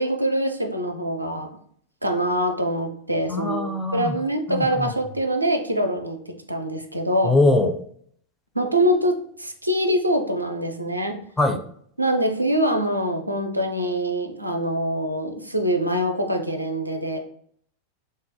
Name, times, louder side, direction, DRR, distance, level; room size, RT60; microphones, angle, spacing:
voice 1, 0.0-1.5 2.0-7.4 8.5-11.2 12.0-17.2, right 1 dB, 85° right, 5 dB, 0.4 m, -24 dB
voice 2, 3.3-4.2 4.5-4.9 7.2-7.8 11.4-11.6, left 2 dB, 10° left, 6 dB, 0.4 m, -22 dB
3.9 x 2.1 x 2.6 m, 0.62 s
figure-of-eight pair, 90°, 0 cm